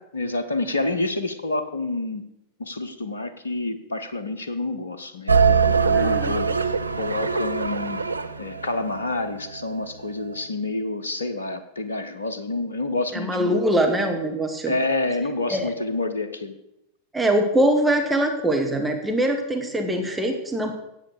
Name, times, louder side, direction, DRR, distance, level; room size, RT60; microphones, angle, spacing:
voice 1, 0.1-2.3 2.6-8.1 8.4-13.6 14.7-16.6, left 2 dB, 75° left, 10 dB, 0.9 m, -28 dB
sound 1, 5.3-9.6, right 5 dB, 80° right, 0.5 m, -22 dB
voice 2, 5.8-6.4 13.1-14.7 15.5-15.7 17.1-20.7, right 1 dB, 10° right, 3 dB, 1.5 m, -23 dB
9.4 x 8.3 x 6.6 m, 0.86 s
figure-of-eight pair, 90°, 0 cm